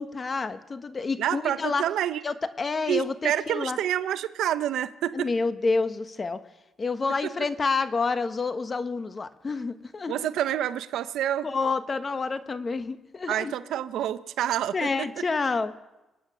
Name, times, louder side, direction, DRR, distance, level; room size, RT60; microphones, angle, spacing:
voice 1, 0.0-1.8 2.2-3.8 5.1-6.4 6.8-10.2 11.4-13.5 14.7-15.7, left 4 dB, 35° left, 11 dB, 1.1 m, -28 dB
voice 2, 1.2-2.2 2.9-5.3 10.1-11.5 13.3-15.1, right 11 dB, 80° right, 14 dB, 0.7 m, -28 dB
25.5 x 9.0 x 6.1 m, 1.0 s
cardioid pair, 90°, 0 cm